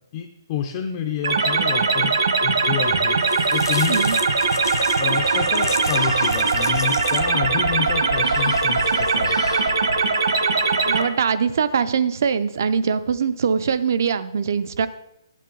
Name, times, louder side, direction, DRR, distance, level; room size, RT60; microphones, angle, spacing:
voice 1, 0.1-2.1 2.4-3.2 3.5-4.1 5.0-9.4, left 9 dB, 20° left, 3 dB, 0.4 m, -28 dB
sound 1, 1.2-11.0, right 4 dB, 55° right, 1.1 m, -20 dB
sound 2, 2.7-11.0, left 6 dB, 55° left, 0.8 m, -37 dB
Yell, 2.9-3.0 4.0-4.1 5.2-6.4 8.3-9.7, left 3 dB, 75° left, 1.5 m, -33 dB
voice 2, 10.9-14.9, right 6 dB, 40° right, 13 dB, 0.4 m, -22 dB
11.0 x 8.4 x 3.8 m, 0.88 s
hypercardioid pair, 180°, 2 cm